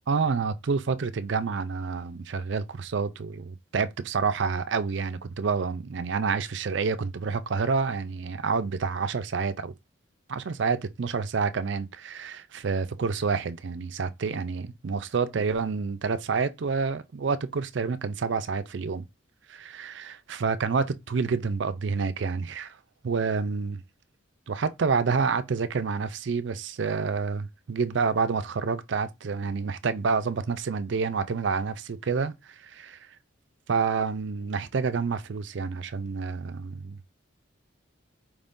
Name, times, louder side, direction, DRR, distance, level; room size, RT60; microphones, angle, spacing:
voice 1, 0.1-9.7 10.3-19.1 19.5-22.8 23.0-23.8 24.5-33.0 33.7-37.0, right 5 dB, 60° right, 0.4 m, -28 dB
4.9 x 3.6 x 2.6 m
head